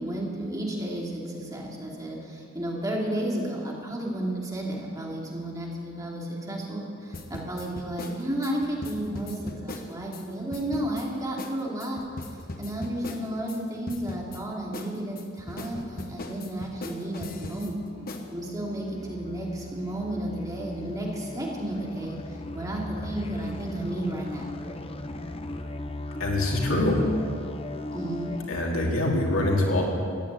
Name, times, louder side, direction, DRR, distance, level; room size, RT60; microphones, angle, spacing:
voice 1, 0.0-12.0 12.6-17.8 18.3-22.2 22.5-24.5 27.9-28.3, right 1 dB, 20° right, -3 dB, 2.8 m, -32 dB
sound 1, 7.1-10.2 10.5-11.1 11.4-11.5 11.8-13.6 13.9-14.4 14.7-17.7 18.1-18.3, left 2 dB, 45° left, 1.3 m, -38 dB
sound 2, 17.1-28.5, left 1 dB, 30° left, 0.8 m, -38 dB
voice 2, 26.2-27.0 28.5-29.8, left 1 dB, 85° left, -1 dB, 2.9 m, -24 dB
15.5 x 10.0 x 9.0 m, 2.3 s
head